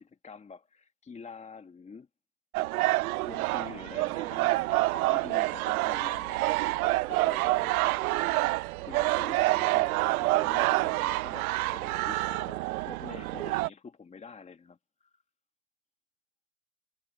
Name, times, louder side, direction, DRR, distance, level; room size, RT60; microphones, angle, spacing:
voice 1, 0.0-2.1 3.3-6.8 7.1-7.9 8.8-9.9 10.2-15.1, left 5 dB, 15° left, 2.0 m, -47 dB
sound 1, 2.5-13.7, right 19 dB, 75° right, 0.8 m, -27 dB
supercardioid pair, 125°, 43 cm